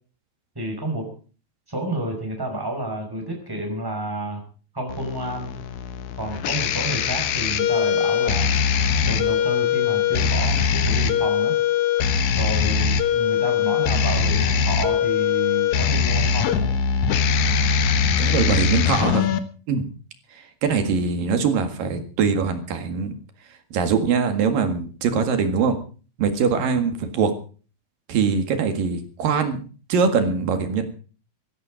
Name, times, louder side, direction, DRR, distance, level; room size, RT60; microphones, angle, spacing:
voice 1, 0.5-1.1 1.7-4.4 4.7-5.5 6.2-8.5 9.0-11.5 12.3-16.7, right 1 dB, 5° right, 3 dB, 5.1 m, -30 dB
sound 1, 4.9-19.4, left 7 dB, 75° left, 1.7 m, -21 dB
voice 2, 18.2-19.4 19.7-19.8 20.3-23.1 23.7-25.8 26.2-27.3 28.1-29.6 29.9-30.8, right 5 dB, 55° right, 7 dB, 3.2 m, -22 dB
16.0 x 14.5 x 5.1 m, 0.39 s
omnidirectional pair, 5.2 m